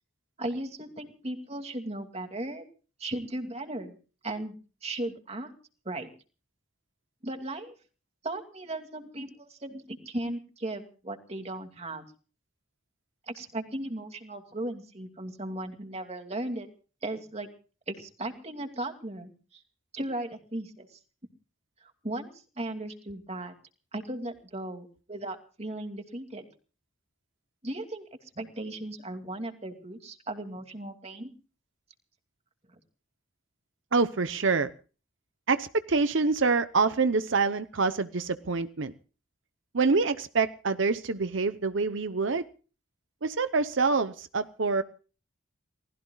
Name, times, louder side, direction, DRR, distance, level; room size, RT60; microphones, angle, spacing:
voice 1, 0.4-2.7 3.0-4.0 4.2-4.6 4.8-5.5 5.8-6.1 7.2-7.7 8.2-12.0 13.3-16.7 17.0-17.5 17.9-19.6 19.9-21.0 21.8-23.5 23.9-26.5 27.6-28.0 28.4-31.3, right 1 dB, 30° right, 5 dB, 2.5 m, -36 dB
voice 2, 33.9-34.7 35.5-38.9 39.7-42.4 43.2-44.8, right 4 dB, 70° right, 11 dB, 0.8 m, -26 dB
29.5 x 19.5 x 2.4 m, 0.38 s
head